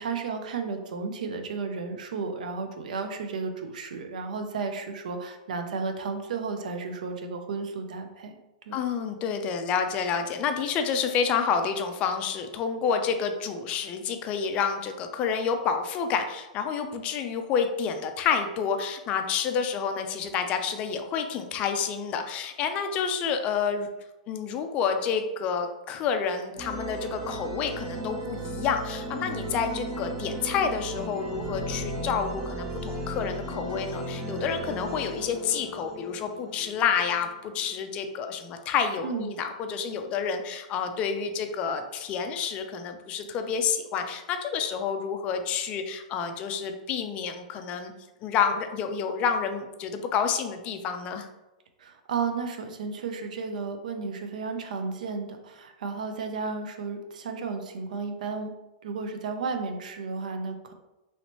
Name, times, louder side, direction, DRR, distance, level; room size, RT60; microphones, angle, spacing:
voice 1, 0.0-8.3 8.7-8.8 39.0-39.3 51.8-58.5 58.8-60.7, right 4 dB, 75° right, 6 dB, 0.5 m, -33 dB
voice 2, 8.7-23.9 24.3-47.9 48.2-51.3, left 6 dB, 30° left, 7 dB, 0.3 m, -29 dB
sound 1, 26.6-38.0, right 1 dB, 40° right, 0.8 m, -36 dB
3.1 x 2.9 x 2.9 m, 1.0 s
hypercardioid pair, 145°, 4 cm